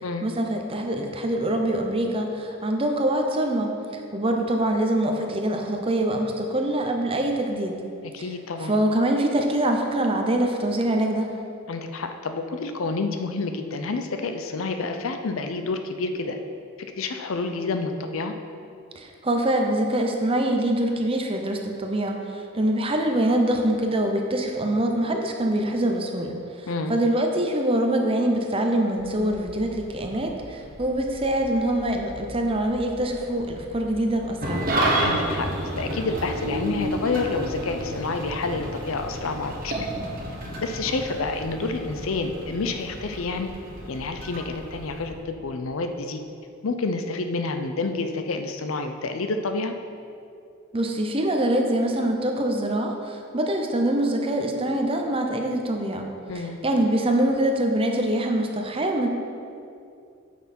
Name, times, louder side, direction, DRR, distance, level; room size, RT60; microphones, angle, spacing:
voice 1, 0.2-3.7 4.1-7.7 8.6-11.3 19.0-34.6 50.7-59.1, right 1 dB, 25° right, 3 dB, 0.7 m, -24 dB
voice 2, 8.0-8.7 11.7-16.4 16.8-18.4 26.7-26.9 35.0-35.5 35.8-39.9 40.6-43.5 43.9-46.2 46.6-49.7 56.3-56.6, left 3 dB, 70° left, 6 dB, 0.6 m, -29 dB
sound 1, 28.9-45.2, equal, 85° left, 1.7 m, -44 dB
Engine starting / Idling, 34.4-45.0, right 1 dB, 45° right, 1.3 m, -30 dB
9.4 x 6.1 x 4.3 m, 2.5 s
head